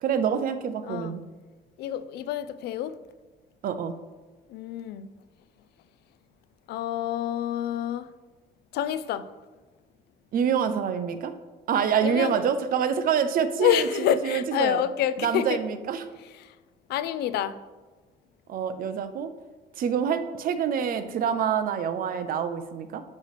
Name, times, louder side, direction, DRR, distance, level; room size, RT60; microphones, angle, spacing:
voice 1, 0.0-1.2 3.6-3.9 10.3-11.3 11.7-14.8 15.2-16.1 18.5-19.3 19.8-23.0, right 7 dB, 60° right, 10 dB, 0.8 m, -26 dB
voice 2, 0.8-1.2 1.8-3.0 4.5-5.1 6.7-8.1 8.7-9.3 12.0-12.4 13.6-15.6 16.4-16.5 16.9-17.6, left 10 dB, 75° left, 14 dB, 0.5 m, -27 dB
9.5 x 3.2 x 6.6 m, 1.3 s
cardioid pair, 110°, 17 cm